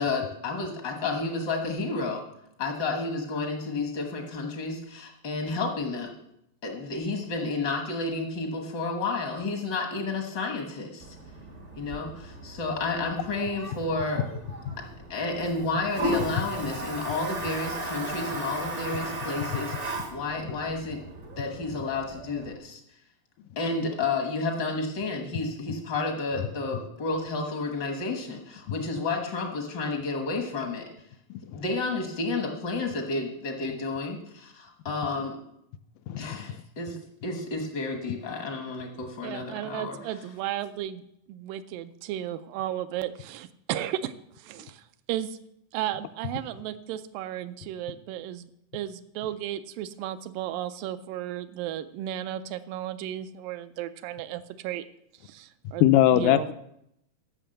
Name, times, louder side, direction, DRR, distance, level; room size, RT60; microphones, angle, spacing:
voice 1, 0.0-2.2 2.6-6.1 6.6-11.1 11.8-14.2 15.1-21.0 21.4-22.8 23.6-30.9 31.5-35.4 36.2-40.0, left 3 dB, 60° left, 3 dB, 1.1 m, -31 dB
Toilet flush, 11.0-22.5, right 1 dB, 65° right, 0.7 m, -36 dB
voice 2, 31.3-31.6 36.1-36.6 55.8-56.5, left 13 dB, 80° left, 10 dB, 2.1 m, -22 dB
voice 3, 39.2-41.0 41.3-45.4 45.7-54.9 55.2-55.8 56.1-56.5, right 12 dB, 85° right, 11 dB, 2.2 m, -34 dB
12.5 x 6.0 x 7.7 m, 0.77 s
omnidirectional pair, 4.0 m